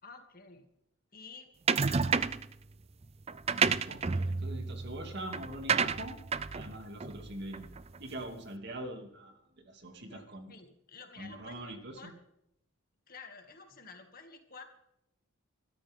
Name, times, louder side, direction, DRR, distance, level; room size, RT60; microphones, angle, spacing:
voice 1, 0.0-0.7 1.1-1.5 1.9-2.2 10.1-12.1 13.1-14.6, left 4 dB, 45° left, 4 dB, 2.3 m, -51 dB
sound 1, 1.7-2.5 3.3-8.0, right 5 dB, 30° right, 0.5 m, -31 dB
voice 2, 3.9-6.2 6.5-7.7 8.0-10.5 11.2-12.1, right 1 dB, 55° right, 4 dB, 2.6 m, -43 dB
23.0 x 13.5 x 3.7 m, 0.78 s
head